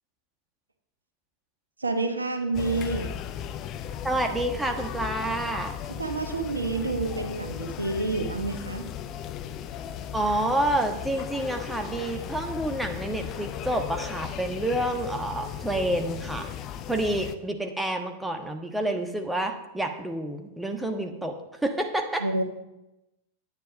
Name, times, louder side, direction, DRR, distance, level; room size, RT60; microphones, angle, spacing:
voice 1, 1.8-3.1 6.0-8.9 22.2-22.4, right 3 dB, 80° right, 6 dB, 1.2 m, -28 dB
sound 1, 2.5-17.4, left 9 dB, 35° left, 0.7 m, -36 dB
voice 2, 4.0-5.7 10.1-16.5 16.9-21.4 21.6-22.2, right 1 dB, 5° right, 4 dB, 1.3 m, -28 dB
10.5 x 9.5 x 5.2 m, 0.94 s
figure-of-eight pair, 90°, 0 cm